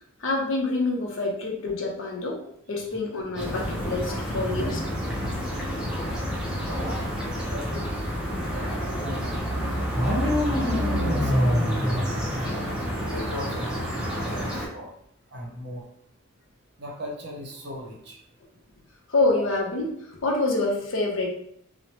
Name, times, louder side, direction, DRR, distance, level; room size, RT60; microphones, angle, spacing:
voice 1, 0.2-4.8 19.1-21.3, left 2 dB, 65° left, -1 dB, 0.6 m, -27 dB
sound 1, 3.4-14.7, equal, 5° right, 0.5 m, -29 dB
voice 2, 4.3-4.7 5.0-6.1 6.5-7.1 7.4-8.9 10.0-10.4 10.7-11.5 11.9-12.2 12.8-14.9 15.3-15.9 16.8-18.2, equal, 50° right, -1 dB, 0.7 m, -39 dB
sound 2, 9.9-13.0, equal, 50° left, 1.0 m, -26 dB
3.0 x 2.0 x 2.8 m, 0.68 s
head